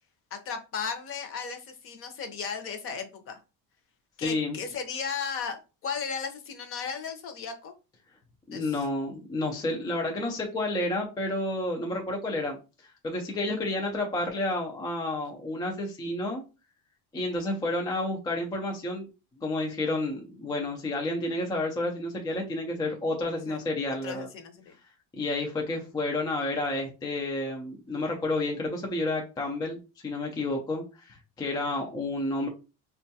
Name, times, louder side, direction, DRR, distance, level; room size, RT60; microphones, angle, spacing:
voice 1, 0.3-3.4 4.2-7.7 8.5-8.8 23.5-24.7, left 6 dB, 40° left, 6 dB, 0.7 m, -36 dB
voice 2, 4.2-4.6 8.5-16.4 17.1-19.1 19.4-24.3 25.1-32.5, left 2 dB, 10° left, 1 dB, 0.3 m, -30 dB
4.2 x 2.3 x 2.7 m, 0.31 s
cardioid pair, 160°, 35 cm